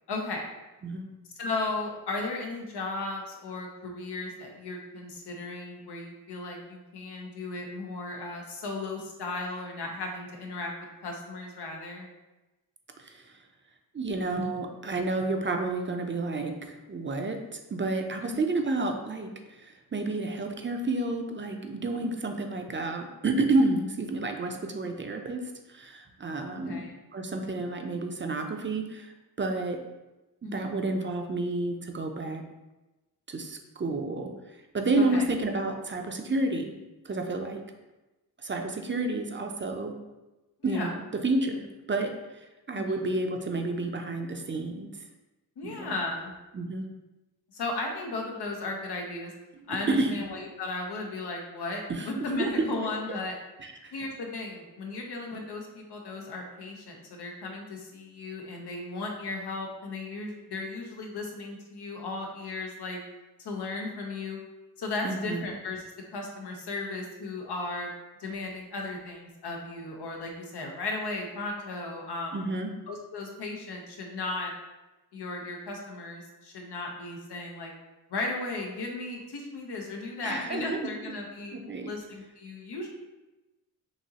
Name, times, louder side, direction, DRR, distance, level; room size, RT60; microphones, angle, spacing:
voice 1, 0.1-0.4 1.4-10.7 11.0-12.1 18.2-18.4 26.6-26.9 30.4-30.7 35.1-35.2 40.6-40.9 42.7-43.0 45.6-46.3 47.5-49.3 49.7-53.3 53.9-63.0 63.4-64.4 64.8-65.8 66.1-67.9 68.2-72.4 72.9-74.5 75.1-77.7 78.1-82.9, left 2 dB, 90° left, 1 dB, 0.9 m, -35 dB
voice 2, 13.0-13.4 13.9-29.8 30.5-32.4 33.3-36.7 37.0-37.6 38.4-40.0 40.6-44.9 45.6-46.0 46.5-46.9 49.5-50.2 51.9-52.5 53.6-53.9 65.0-65.5 72.3-72.7 80.2-81.2 81.5-81.9, right 2 dB, 30° right, 4 dB, 0.5 m, -30 dB
6.2 x 2.9 x 2.8 m, 1.1 s
wide cardioid pair, 105°, 39 cm